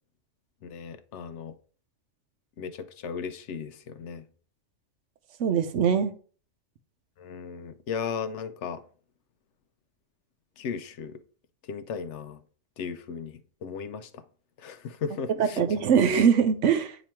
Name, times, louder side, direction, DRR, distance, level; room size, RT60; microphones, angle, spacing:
voice 1, 0.6-1.5 2.6-4.2 7.2-8.8 10.6-11.2 11.7-12.4 12.8-14.2 14.6-15.7, left 6 dB, 65° left, 0.8 m, -36 dB
voice 2, 5.4-6.1 15.4-17.0, right 7 dB, 70° right, 1.0 m, -22 dB
8.7 x 3.0 x 4.3 m
omnidirectional pair, 1.4 m